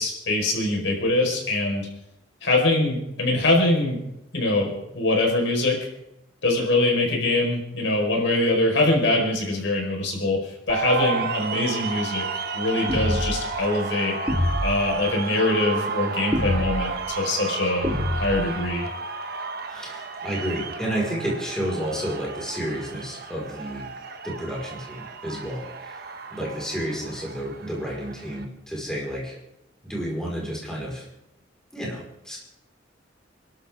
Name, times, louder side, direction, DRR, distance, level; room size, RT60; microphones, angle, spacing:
voice 1, 0.0-1.9 2.4-4.0 4.3-5.8 6.4-10.4 10.7-14.2 14.6-17.9 18.1-18.9, left 2 dB, 70° left, 0 dB, 4.8 m, -23 dB
sound 1, 10.7-28.5, right 4 dB, 55° right, 1.2 m, -33 dB
sound 2, 12.9-13.4 14.3-14.8 16.3-16.9 17.8-18.5, equal, 15° right, 3.3 m, -25 dB
voice 2, 19.7-23.9 24.2-29.4 29.8-31.1 31.7-32.4, equal, 5° left, -4 dB, 4.8 m, -31 dB
29.0 x 12.5 x 3.7 m, 0.86 s
head